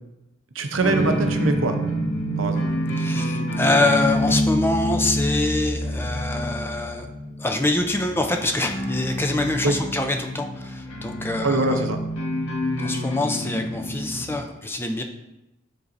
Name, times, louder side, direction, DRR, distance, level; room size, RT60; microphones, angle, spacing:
voice 1, 0.5-1.8 2.4-2.7 9.6-9.8 11.4-12.0, right 2 dB, 75° right, 6 dB, 0.6 m, -23 dB
sound 1, 0.8-14.4, equal, 75° left, 1.4 m, -27 dB
voice 2, 3.0-7.1 7.4-11.8 12.8-15.0, left 2 dB, 10° left, 4 dB, 0.4 m, -25 dB
9.7 x 3.9 x 2.6 m, 0.95 s
head